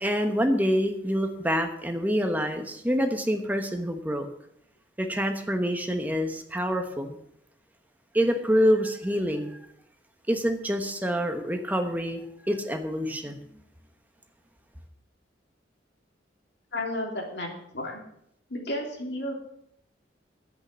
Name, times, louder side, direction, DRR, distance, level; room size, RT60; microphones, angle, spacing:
voice 1, 0.0-4.3 5.0-7.2 8.1-9.6 10.3-13.4, equal, 10° right, 5 dB, 1.2 m, -26 dB
voice 2, 16.7-18.0 18.5-19.3, left 1 dB, 65° left, 1 dB, 3.1 m, -32 dB
10.5 x 8.6 x 7.5 m, 0.73 s
head